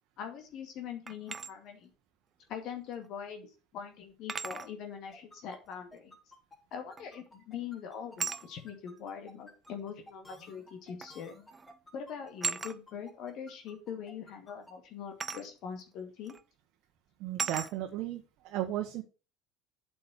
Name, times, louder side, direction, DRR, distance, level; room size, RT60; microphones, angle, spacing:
voice 1, 0.2-1.9 2.5-6.1 6.7-11.4 11.9-16.3, left 7 dB, 55° left, 5 dB, 2.2 m, -42 dB
sound 1, 1.1-1.5 3.0-3.1 4.3-4.7 7.0-7.3 8.2-8.5 9.6-9.7 11.0-11.2 11.5-11.8 12.4-12.8 15.2-15.5 16.3-16.4 17.4-17.7, right 5 dB, 25° right, 0.7 m, -36 dB
sound 2, 5.1-14.7, left 1 dB, 20° left, 4.1 m, -54 dB
voice 2, 17.2-19.0, right 13 dB, 60° right, 4 dB, 1.3 m, -35 dB
8.1 x 6.2 x 6.5 m, 0.32 s
hypercardioid pair, 75°, 0 cm